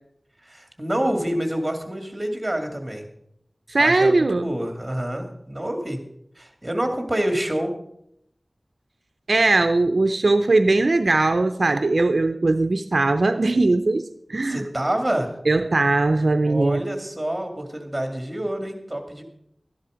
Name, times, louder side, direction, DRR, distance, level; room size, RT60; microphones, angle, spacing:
voice 1, 0.5-3.1 3.8-6.0 6.4-7.7 14.4-15.3 16.5-19.2, right 1 dB, 20° right, 5 dB, 2.3 m, -27 dB
voice 2, 3.7-4.5 9.3-14.6 15.5-16.8, right 2 dB, 70° right, 8 dB, 0.6 m, -20 dB
13.0 x 10.5 x 5.1 m, 0.74 s
wide cardioid pair, 65°, 0 cm